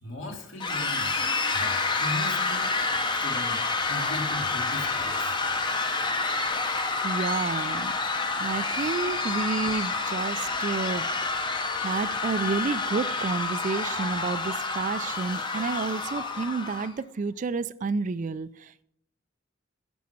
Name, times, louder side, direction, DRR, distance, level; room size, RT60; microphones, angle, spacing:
voice 1, 0.0-2.8 3.2-5.4, left 1 dB, 75° left, 2.4 m, -38 dB
sound 1, 0.6-16.9, left 3 dB, 25° left, 0.8 m, -28 dB
voice 2, 7.0-7.9 8.4-11.5 11.8-18.8, right 4 dB, 40° right, 0.3 m, -30 dB
11.5 x 6.2 x 5.9 m
head